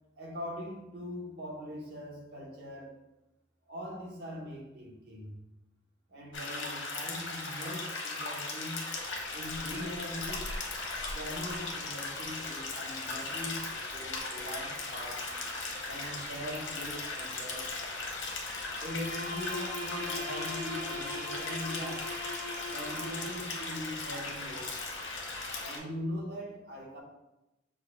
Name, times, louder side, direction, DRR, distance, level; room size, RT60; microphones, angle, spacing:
voice 1, 0.2-3.0 3.7-5.4 6.1-8.8 9.3-10.5 11.1-15.3 15.9-17.8 18.8-22.1 22.7-24.8 25.6-27.0, equal, 55° right, -1 dB, 1.1 m, -41 dB
sound 1, 6.3-25.8, left 3 dB, 85° left, 0.9 m, -38 dB
sound 2, 8.9-25.6, left 2 dB, 40° left, 0.3 m, -52 dB
Bowed string instrument, 18.7-23.7, left 2 dB, 80° right, 1.3 m, -40 dB
6.0 x 2.3 x 3.6 m, 0.97 s
head